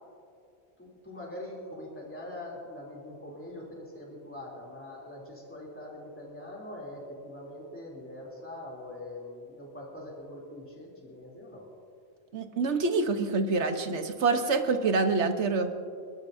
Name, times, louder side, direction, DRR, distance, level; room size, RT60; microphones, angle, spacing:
voice 1, 0.8-11.7, left 1 dB, 10° left, -4 dB, 3.1 m, -43 dB
voice 2, 12.3-15.7, right 3 dB, 85° right, 7 dB, 1.4 m, -26 dB
28.5 x 13.0 x 2.7 m, 2.4 s
omnidirectional pair, 1.1 m